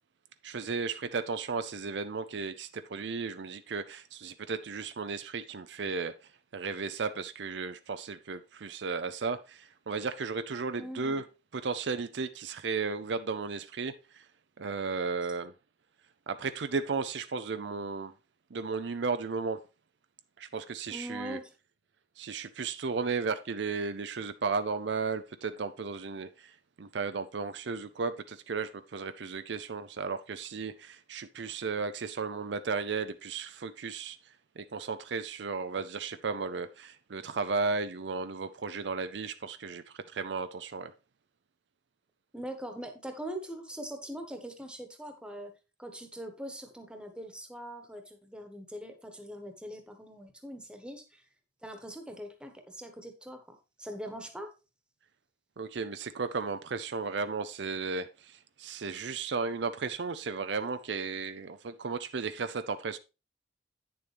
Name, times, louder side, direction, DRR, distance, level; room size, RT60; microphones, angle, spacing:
voice 1, 0.4-6.1 6.5-11.2 11.5-14.2 14.6-15.5 16.3-18.1 18.5-19.6 20.4-21.4 22.2-26.5 26.8-34.2 34.6-40.9 55.6-63.0, right 4 dB, 70° right, 0.5 m, -34 dB
voice 2, 10.8-11.2 20.9-21.5 42.3-45.5 45.8-51.2 51.6-54.5, right 1 dB, 5° right, 1.3 m, -42 dB
9.3 x 6.9 x 3.4 m
head